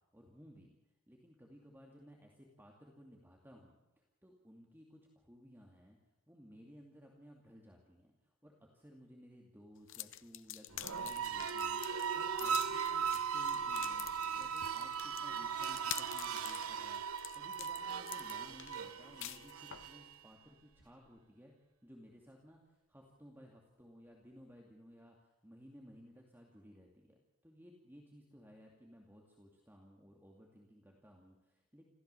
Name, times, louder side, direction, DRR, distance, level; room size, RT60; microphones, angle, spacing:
voice 1, 0.1-0.8 1.1-3.8 4.2-6.0 6.3-21.5 21.8-27.2 27.4-31.8, equal, 10° right, 0 dB, 2.5 m, -58 dB
sound 1, 9.9-19.9, left 13 dB, 65° left, 0.8 m, -47 dB
sound 2, 10.7-20.1, right 7 dB, 90° right, 1.2 m, -38 dB
27.0 x 15.0 x 7.0 m, 1.0 s
head